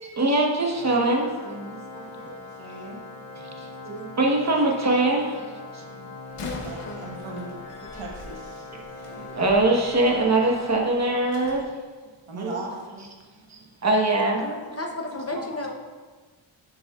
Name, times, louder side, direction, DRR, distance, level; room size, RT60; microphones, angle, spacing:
voice 1, 0.0-2.4 3.3-5.8 8.7-8.8 9.2-11.6 12.4-12.6 13.5-14.4, right 2 dB, 30° right, -1 dB, 1.1 m, -23 dB
Organ, 0.7-11.5, left 3 dB, 70° left, 1.6 m, -41 dB
voice 2, 2.6-3.0 6.6-7.5 7.9-8.7 12.3-13.1, right 2 dB, 75° right, -1 dB, 1.3 m, -38 dB
Slam, 6.2-11.6, left 3 dB, 85° left, 1.0 m, -43 dB
voice 3, 6.4-7.0 12.7-12.8 14.4-15.7, left 2 dB, 30° left, 1 dB, 0.7 m, -34 dB
7.4 x 7.0 x 2.4 m, 1.4 s
wide cardioid pair, 120°, 50 cm